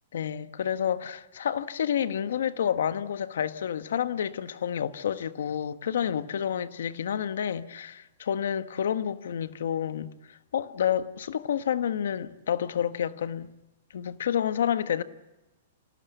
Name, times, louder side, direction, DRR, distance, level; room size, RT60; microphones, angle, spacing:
voice 1, 0.1-13.5 13.9-15.0, left 9 dB, 80° left, 1.3 m, -29 dB
27.5 x 18.5 x 8.1 m
hypercardioid pair, 150°, 0 cm